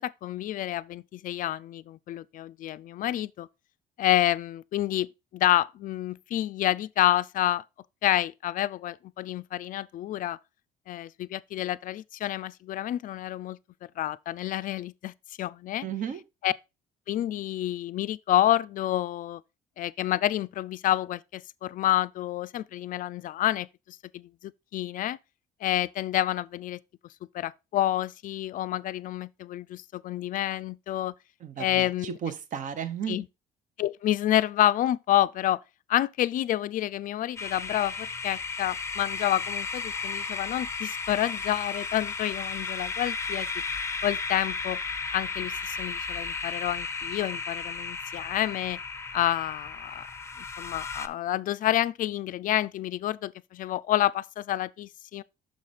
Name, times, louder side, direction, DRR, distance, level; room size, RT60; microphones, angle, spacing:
voice 1, 0.0-3.5 4.0-5.1 5.3-7.6 8.0-10.4 10.9-13.6 14.0-15.9 16.4-16.5 17.1-19.4 19.8-25.2 25.6-26.8 27.3-31.1 31.6-32.2 33.1-33.3 33.8-35.6 35.9-43.5 44.0-44.8 45.1-48.8 49.1-50.1 50.6-55.2, left 13 dB, 55° left, 0.4 m, -28 dB
voice 2, 15.8-16.2 31.4-33.2, right 8 dB, 50° right, 0.9 m, -34 dB
sound 1, 37.4-51.1, left 4 dB, 15° left, 0.6 m, -34 dB
6.4 x 4.9 x 4.0 m
cardioid pair, 110°, 17 cm